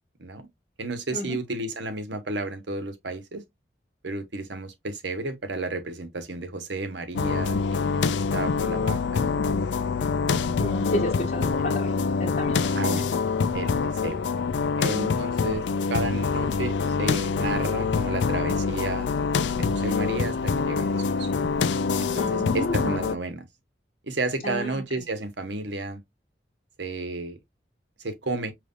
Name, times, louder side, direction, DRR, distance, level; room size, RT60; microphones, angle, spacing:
voice 1, 0.8-3.4 4.0-9.6 10.3-10.6 11.6-11.7 12.8-13.1 13.5-14.2 14.8-15.6 15.9-19.1 19.5-21.3 22.0-23.4 24.0-26.0 26.8-27.4 28.0-28.5, right 2 dB, 80° right, 1.0 m, -32 dB
sound 1, 7.1-23.2, left 5 dB, 80° left, 0.4 m, -25 dB
voice 2, 10.6-11.9 12.2-12.7 22.1-22.9 24.4-24.8, left 1 dB, 50° left, 1.0 m, -31 dB
5.2 x 3.2 x 2.4 m
head